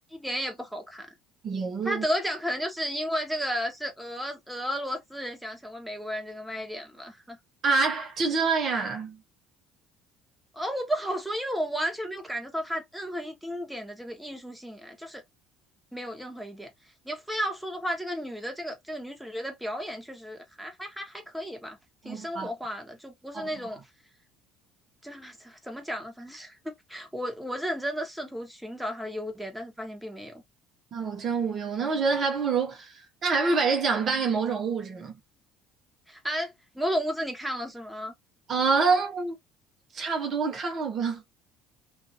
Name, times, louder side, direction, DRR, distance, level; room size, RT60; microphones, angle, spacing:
voice 1, 0.1-1.1 1.8-7.4 10.5-15.2 15.9-16.7 17.0-21.8 22.0-23.8 25.0-30.4 36.1-38.1, equal, 5° right, 1.2 m, -33 dB
voice 2, 1.4-2.0 7.6-9.2 22.0-22.5 23.3-23.5 30.9-35.2 38.5-39.4 39.9-41.2, right 4 dB, 50° right, 0.8 m, -26 dB
2.5 x 2.5 x 2.7 m
hypercardioid pair, 65°, 0 cm